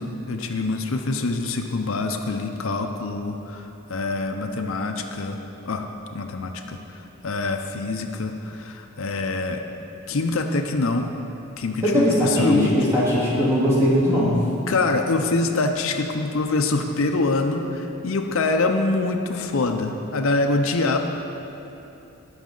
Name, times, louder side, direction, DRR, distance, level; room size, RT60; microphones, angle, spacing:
voice 1, 0.0-5.4 5.7-5.8 6.1-9.6 10.1-11.1 11.6-12.7 14.7-21.0, left 3 dB, 65° left, 4 dB, 0.6 m, -25 dB
voice 2, 11.8-14.4, equal, 15° right, -8 dB, 2.5 m, -19 dB
18.5 x 6.2 x 3.9 m, 3.0 s
head